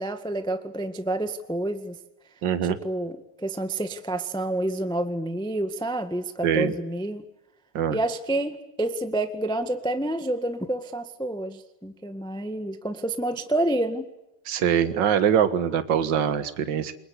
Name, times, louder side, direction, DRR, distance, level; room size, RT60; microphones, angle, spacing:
voice 1, 0.0-1.9 2.8-7.2 7.9-14.0, right 1 dB, 5° left, 8 dB, 0.8 m, -28 dB
voice 2, 2.4-2.8 6.4-6.7 7.7-8.0 14.5-16.9, right 8 dB, 45° right, 11 dB, 1.7 m, -23 dB
28.5 x 23.0 x 8.4 m, 0.90 s
omnidirectional pair, 3.6 m